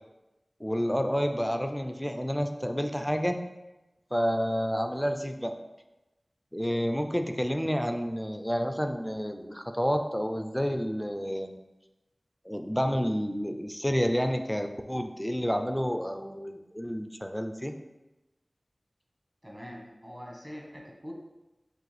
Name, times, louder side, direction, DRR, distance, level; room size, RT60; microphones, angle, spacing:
voice 1, 0.6-3.4 4.1-5.5 6.5-11.6 12.5-17.7, equal, 5° left, 6 dB, 0.4 m, -29 dB
voice 2, 19.4-21.1, equal, 15° right, -1 dB, 1.1 m, -43 dB
6.1 x 2.5 x 3.3 m, 1.0 s
wide cardioid pair, 45°, 0 cm